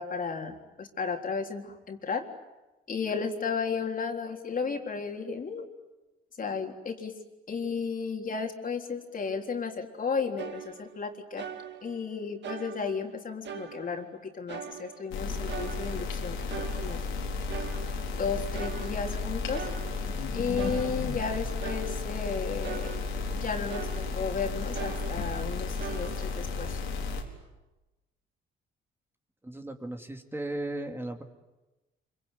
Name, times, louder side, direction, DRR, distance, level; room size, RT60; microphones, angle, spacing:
voice 1, 0.0-2.2 2.9-5.7 6.4-7.1 7.5-11.4 11.8-17.0 18.2-19.6 20.3-22.9 23.4-26.8, left 5 dB, 45° left, 3 dB, 3.6 m, -34 dB
sound 1, 10.4-11.1 11.4-12.1 12.4-14.2 14.5-15.2 15.5-18.2 18.5-20.2 20.6-23.4 23.7-24.4 24.7-26.4, right 8 dB, 60° right, 2.0 m, -42 dB
sound 2, 15.1-27.2, left 4 dB, 85° left, 4.1 m, -33 dB
voice 2, 29.4-31.2, right 1 dB, 10° right, 4 dB, 2.4 m, -36 dB
26.0 x 24.5 x 9.2 m, 1.1 s
cardioid pair, 90°, 20 cm